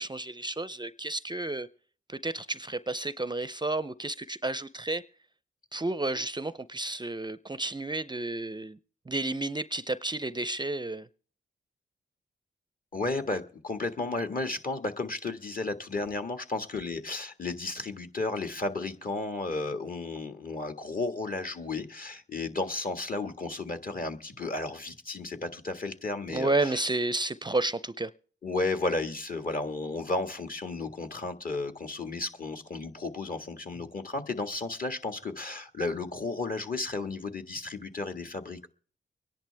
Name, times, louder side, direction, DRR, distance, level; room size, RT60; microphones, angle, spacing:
voice 1, 0.0-1.7 2.1-5.0 5.7-8.8 9.1-11.1 26.3-28.1, right 2 dB, 20° right, 16 dB, 0.5 m, -31 dB
voice 2, 12.9-26.8 28.4-38.7, left 3 dB, 45° left, 7 dB, 1.7 m, -33 dB
24.0 x 10.5 x 3.4 m, 0.43 s
cardioid pair, 45°, 20 cm